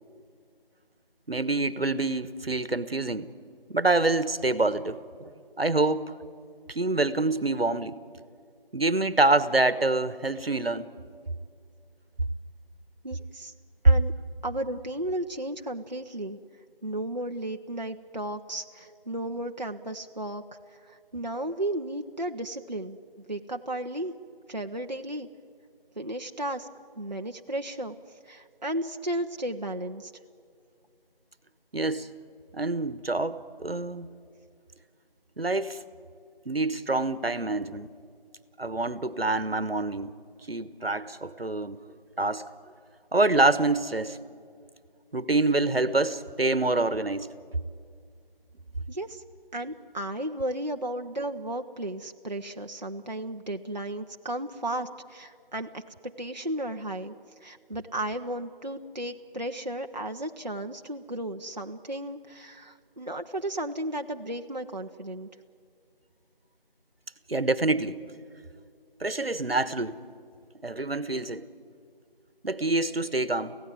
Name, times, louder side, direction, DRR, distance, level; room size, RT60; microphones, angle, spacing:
voice 1, 1.3-3.3 3.7-5.3 5.6-6.1 6.7-8.0 8.7-10.9 31.7-32.1 32.5-34.1 35.4-35.8 36.4-37.9 38.6-40.1 40.5-41.8 42.2-42.4 43.1-44.2 45.1-47.3 67.3-68.0 69.0-70.0 70.6-71.5 72.4-73.6, right 2 dB, 80° right, 1.3 m, -26 dB
voice 2, 13.0-13.5 13.8-14.1 14.4-16.4 16.8-23.0 23.3-24.1 24.5-25.3 26.0-26.7 27.0-30.1 48.9-49.2 49.5-57.1 57.4-65.3, right 1 dB, 45° right, 0.8 m, -34 dB
25.5 x 16.5 x 9.2 m
figure-of-eight pair, 180°, 29 cm